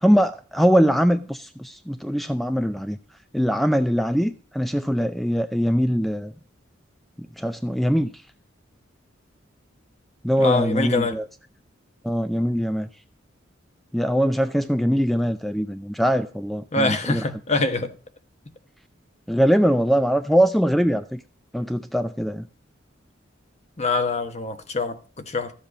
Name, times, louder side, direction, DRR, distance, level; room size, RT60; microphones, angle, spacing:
voice 1, 0.0-3.0 3.3-6.3 7.4-8.1 10.2-11.3 12.0-12.9 13.9-17.2 19.3-21.2 21.5-22.5, equal, ahead, 0.4 m, -22 dB
voice 2, 10.4-11.2 16.7-17.9 23.8-25.5, left 3 dB, 35° left, 1.1 m, -24 dB
13.5 x 7.5 x 5.0 m
head